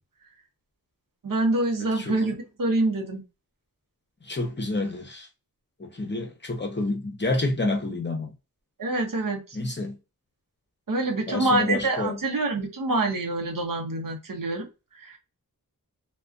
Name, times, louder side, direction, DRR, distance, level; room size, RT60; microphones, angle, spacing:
voice 1, 1.2-3.2 8.8-9.6 10.9-15.2, right 2 dB, 65° right, 0.8 m, -26 dB
voice 2, 4.2-5.3 5.8-8.3 9.5-10.0 11.3-12.2, left 2 dB, 30° left, 0.7 m, -28 dB
2.4 x 2.2 x 2.4 m
wide cardioid pair, 85°, 35 cm